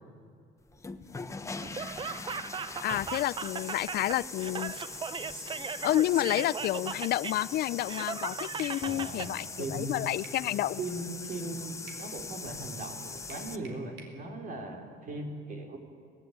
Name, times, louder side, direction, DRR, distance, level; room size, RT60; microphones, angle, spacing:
sound 1, 0.7-13.6, left 3 dB, 15° left, 1.2 m, -42 dB
Laughter, 1.6-9.3, right 6 dB, 30° right, 0.6 m, -38 dB
voice 1, 2.8-4.7 5.8-10.8, left 14 dB, 65° left, 19 dB, 0.5 m, -30 dB
sound 2, 8.6-8.8 10.2-10.5 11.9-12.1 13.3-14.2, right 4 dB, 80° right, 4.1 m, -49 dB
voice 2, 8.8-10.1 10.8-15.8, right 2 dB, 50° right, 3 dB, 4.2 m, -39 dB
23.5 x 17.5 x 9.4 m, 2.3 s
cardioid pair, 110°, 17 cm